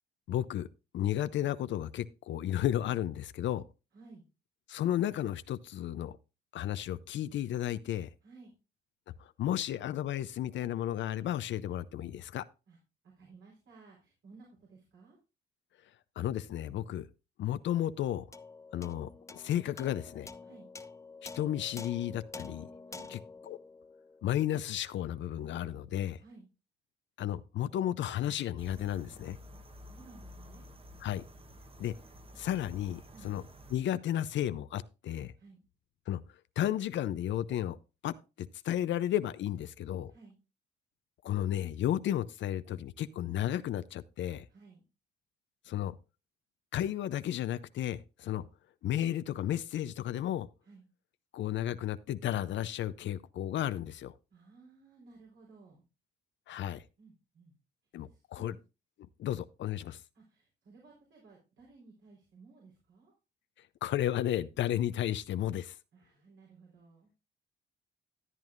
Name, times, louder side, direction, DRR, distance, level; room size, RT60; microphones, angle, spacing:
voice 1, 0.3-0.7 0.9-3.6 4.7-6.2 6.5-8.1 9.2-12.5 16.2-17.1 17.4-18.3 18.7-20.3 21.2-22.7 23.1-23.2 23.5-23.6 24.2-26.2 27.2-29.4 31.0-31.2 31.8-31.9 32.4-33.4 33.7-35.3 36.1-36.2 36.6-40.1 41.2-44.4 45.7-45.9 46.7-48.5 48.8-50.5 51.3-54.1 56.5-56.8 57.9-58.5 59.2-60.0 63.8-65.8, left 12 dB, 70° left, 0.6 m, -33 dB
voice 2, 3.9-4.2 8.2-8.5 12.7-12.8 13.0-15.2 20.4-20.7 22.9-23.1 26.2-26.5 29.6-30.7 33.1-33.3 35.4-35.6 40.1-40.4 44.5-44.8 50.6-50.9 54.3-55.8 57.0-57.5 58.0-58.6 60.1-63.1 65.9-67.1, right 3 dB, 70° right, 4.1 m, -57 dB
sound 1, 18.3-24.9, left 3 dB, 15° left, 0.6 m, -48 dB
sound 2, 28.6-33.8, equal, 30° right, 1.1 m, -52 dB
13.5 x 9.0 x 2.5 m
cardioid pair, 90°, 20 cm